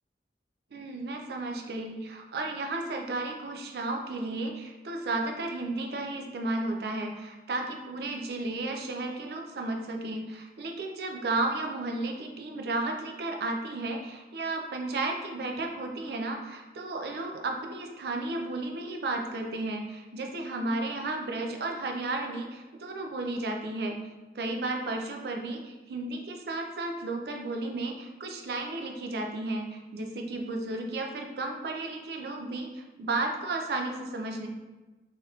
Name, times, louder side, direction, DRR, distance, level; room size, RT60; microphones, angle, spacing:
voice 1, 0.7-24.0 24.3-34.5, right 2 dB, 60° right, 2 dB, 0.4 m, -33 dB
3.3 x 2.9 x 2.3 m, 1.2 s
head